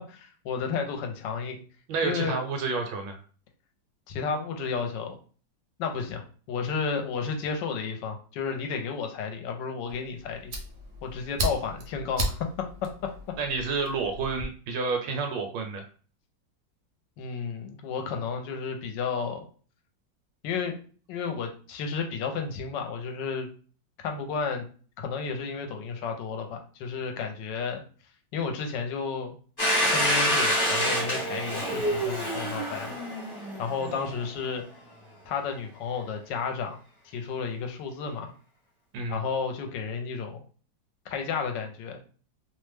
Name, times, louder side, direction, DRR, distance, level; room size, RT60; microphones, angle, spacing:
voice 1, 0.1-1.6 2.0-2.4 4.1-5.2 5.8-10.5 11.0-12.4 17.2-19.4 20.4-20.8 21.1-23.5 24.0-24.7 25.0-27.8 28.3-29.4 29.8-33.0 33.6-34.6 35.3-36.8 37.0-38.3 39.1-40.4 41.1-42.0, left 5 dB, 75° left, 4 dB, 1.2 m, -32 dB
voice 2, 1.9-3.2 13.4-15.8 38.9-39.2, right 4 dB, 75° right, 4 dB, 1.2 m, -29 dB
Fire, 9.9-14.5, right 1 dB, 60° right, 0.8 m, -35 dB
Domestic sounds home sounds, 29.6-34.2, equal, 25° left, 0.5 m, -27 dB
3.1 x 2.1 x 3.2 m, 0.40 s
omnidirectional pair, 2.1 m